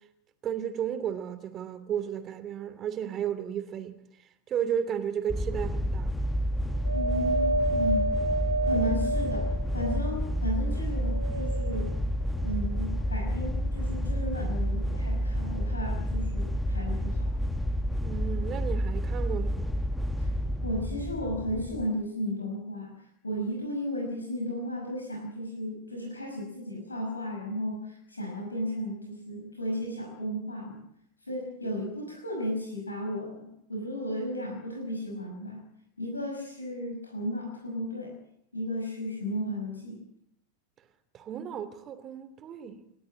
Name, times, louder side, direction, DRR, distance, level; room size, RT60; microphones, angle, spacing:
voice 1, 0.4-3.9 4.5-6.1 18.0-19.9 41.1-42.8, right 9 dB, 30° right, 2.7 m, -33 dB
sound 1, 5.3-21.9, equal, 5° left, 1.3 m, -30 dB
Wind, 6.8-10.4 11.0-12.0 12.8-12.9, right 2 dB, 85° right, 2.0 m, -30 dB
voice 2, 6.9-8.1 8.6-11.9 12.4-17.3 20.2-20.3 20.6-30.8 31.2-35.6 36.0-38.2 38.5-40.0, equal, 80° left, 5.7 m, -34 dB
29.0 x 12.5 x 8.6 m
figure-of-eight pair, 90°, 0 cm